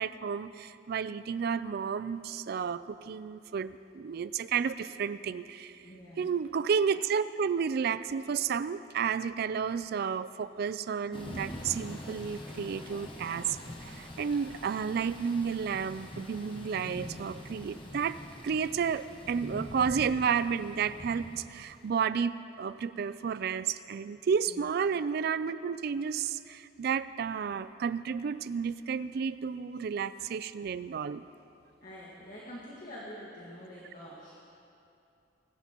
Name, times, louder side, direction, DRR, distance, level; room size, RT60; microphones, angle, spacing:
voice 1, 0.0-5.7 6.2-18.2 18.4-31.2, right 6 dB, 55° right, 15 dB, 0.3 m, -32 dB
voice 2, 5.8-6.3 24.5-24.8 31.8-34.3, equal, 45° left, -6 dB, 1.7 m, -46 dB
Thunder / Rain, 11.1-21.9, left 1 dB, 25° left, 1.2 m, -44 dB
20.5 x 11.5 x 3.0 m, 2.7 s
head